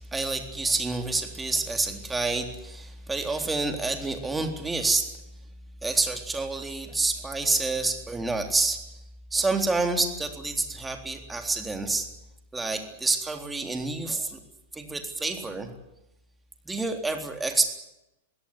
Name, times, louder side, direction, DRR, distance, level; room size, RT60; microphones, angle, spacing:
voice 1, 0.1-5.1 5.8-8.8 9.3-12.1 12.5-14.4 14.7-15.7 16.7-17.7, right 3 dB, 10° right, 5 dB, 3.7 m, -28 dB
22.5 x 17.0 x 9.9 m, 0.91 s
hypercardioid pair, 105°, 0 cm